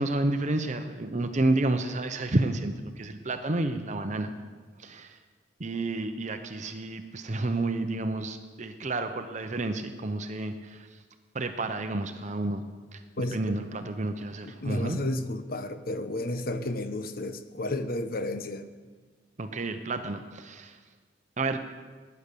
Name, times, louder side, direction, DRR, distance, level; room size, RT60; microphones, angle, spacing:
voice 1, 0.0-4.3 4.8-5.2 5.6-10.9 11.3-12.6 12.9-15.0 19.4-20.8 21.4-21.6, right 2 dB, 40° right, 7 dB, 0.8 m, -30 dB
voice 2, 14.4-18.7, left 1 dB, 50° left, 9 dB, 1.0 m, -32 dB
17.0 x 9.6 x 6.9 m, 1.5 s
head